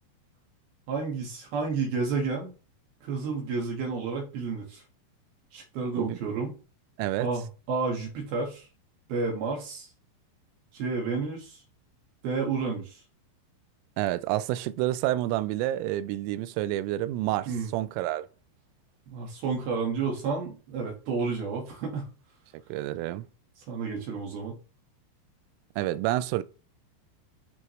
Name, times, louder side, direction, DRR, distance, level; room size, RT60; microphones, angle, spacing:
voice 1, 0.9-2.5 3.0-4.8 5.5-6.5 7.2-8.6 9.1-9.9 10.7-11.6 12.2-13.0 17.5-17.7 19.1-22.1 23.7-24.6, right 4 dB, 60° right, 3.1 m, -31 dB
voice 2, 14.0-18.3 22.7-23.2 25.8-26.4, right 15 dB, 85° right, 3.1 m, -29 dB
12.5 x 4.8 x 3.1 m
omnidirectional pair, 5.7 m